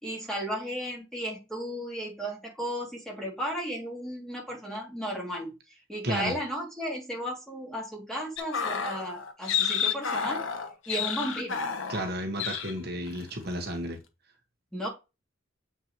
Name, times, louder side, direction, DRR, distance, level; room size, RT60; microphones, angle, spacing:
voice 1, 0.0-5.5 5.9-10.4 10.9-11.6 14.7-14.9, equal, 5° left, 2.6 m, -34 dB
voice 2, 6.0-6.3 11.9-14.0, equal, 50° right, 1.3 m, -32 dB
sound 1, 8.4-12.1 12.4-12.7 13.1-13.3, left 7 dB, 65° left, 1.1 m, -30 dB
7.3 x 5.9 x 3.1 m
head